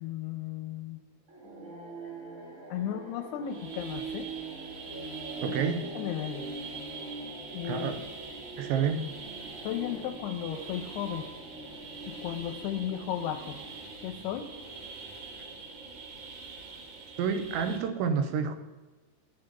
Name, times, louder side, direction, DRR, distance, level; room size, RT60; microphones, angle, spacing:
voice 1, 0.0-1.0 2.7-4.3 5.5-5.6 6.0-6.4 7.5-8.0 9.6-11.3 12.1-13.6 14.0-14.5, left 10 dB, 80° left, 7 dB, 2.4 m, -35 dB
sound 1, 1.3-17.9, right 2 dB, 35° right, 3.0 m, -44 dB
sound 2, 3.5-17.8, right 4 dB, 70° right, 3.7 m, -45 dB
voice 2, 5.4-5.9 7.6-8.0 8.6-9.1 17.2-18.6, right 6 dB, 85° right, 9 dB, 3.2 m, -29 dB
12.0 x 6.9 x 6.7 m, 1.3 s
omnidirectional pair, 5.1 m